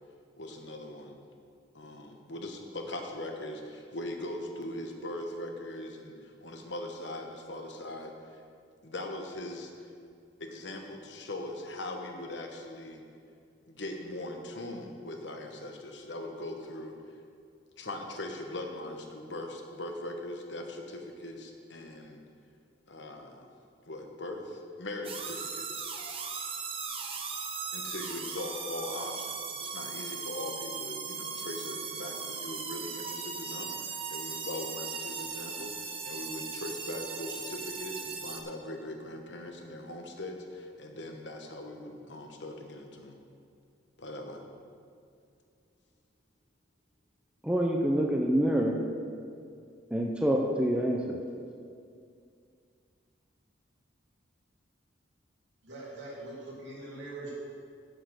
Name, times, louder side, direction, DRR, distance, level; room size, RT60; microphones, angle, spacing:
voice 1, 0.4-1.2 1.7-8.4 8.8-9.9 10.4-13.0 13.7-16.9 17.8-22.2 22.9-23.5 23.9-25.9 27.7-43.2 44.0-44.4, left 1 dB, 65° left, 3 dB, 1.2 m, -40 dB
sound 1, 25.0-38.4, right 5 dB, 30° right, 0.9 m, -38 dB
voice 2, 47.4-48.8 49.9-51.2, equal, 5° right, 0 dB, 0.6 m, -26 dB
voice 3, 55.6-57.4, right 2 dB, 70° right, -4 dB, 2.7 m, -42 dB
8.5 x 8.0 x 6.4 m, 2.3 s
head